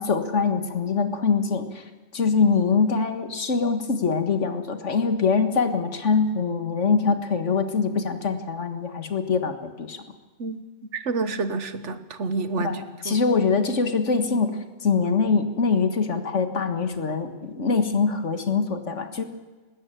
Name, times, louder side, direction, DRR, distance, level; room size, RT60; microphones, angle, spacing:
voice 1, 0.0-1.8 2.1-10.0 12.6-19.2, left 5 dB, 90° left, 8 dB, 1.9 m, -23 dB
voice 2, 11.1-12.8 13.0-13.2, right 3 dB, 80° right, 11 dB, 1.6 m, -28 dB
20.0 x 16.5 x 9.0 m, 1.3 s
omnidirectional pair, 1.2 m